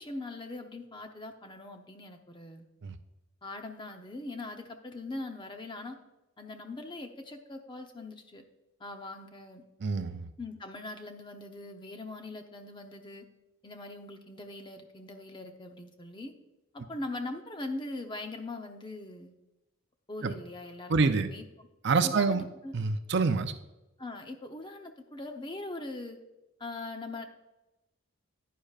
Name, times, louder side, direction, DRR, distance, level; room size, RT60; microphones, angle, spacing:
voice 1, 0.0-2.7 3.4-6.0 6.4-8.4 8.8-9.6 10.4-13.2 13.6-16.3 16.7-19.3 20.1-21.4 22.0-22.4 22.6-22.7 24.0-26.2 26.6-27.2, left 2 dB, 20° left, 5 dB, 0.7 m, -41 dB
voice 2, 9.8-10.3 20.2-20.3 20.9-21.3 21.8-22.4 22.7-23.5, right 4 dB, 55° right, 9 dB, 0.5 m, -26 dB
10.0 x 9.8 x 2.4 m, 0.96 s
head